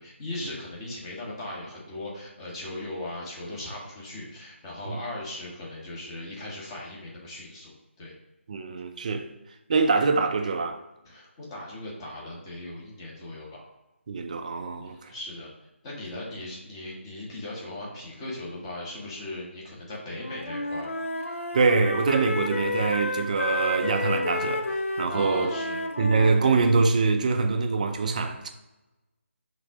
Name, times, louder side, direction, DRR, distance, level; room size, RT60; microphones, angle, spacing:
voice 1, 0.0-8.1 11.0-13.6 14.8-15.5 15.8-20.9 21.2-21.4 24.9-25.8, left 1 dB, 20° left, 1.5 m, -38 dB
voice 2, 8.5-9.3 9.7-10.8 14.1-15.1 21.5-25.5 26.0-28.5, right 4 dB, 35° right, 0.5 m, -24 dB
Wind instrument woodwind instrument, 20.1-26.8, left 2 dB, 80° left, 0.9 m, -31 dB
5.2 x 3.8 x 4.8 m
figure-of-eight pair, 165°, 7 cm